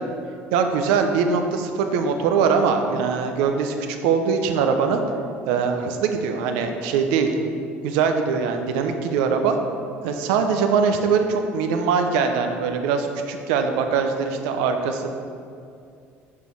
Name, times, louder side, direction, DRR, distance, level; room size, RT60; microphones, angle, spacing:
voice 1, 0.5-3.7 4.0-5.0 5.5-7.3 7.8-9.6 10.0-15.1, right 6 dB, 90° right, 5 dB, 0.7 m, -22 dB
6.5 x 5.3 x 6.1 m, 2.4 s
supercardioid pair, 100°, 5 cm